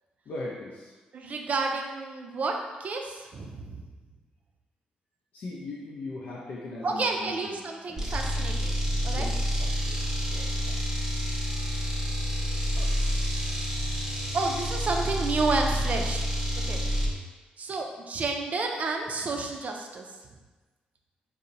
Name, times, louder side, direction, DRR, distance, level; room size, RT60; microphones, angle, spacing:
voice 1, 0.3-0.9 5.3-7.6 7.9-8.3 9.1-9.4 9.9-10.0, left 2 dB, 65° left, -6 dB, 0.4 m, -39 dB
voice 2, 1.1-3.8 6.8-9.3 9.6-9.7 10.3-10.4 12.8-12.9 14.3-16.3 16.6-16.8 17.6-20.0, right 3 dB, 50° right, 2 dB, 0.4 m, -30 dB
sound 1, 8.0-17.2, equal, 20° right, 0.7 m, -28 dB
2.7 x 2.0 x 2.5 m, 1.3 s
supercardioid pair, 55°, 3 cm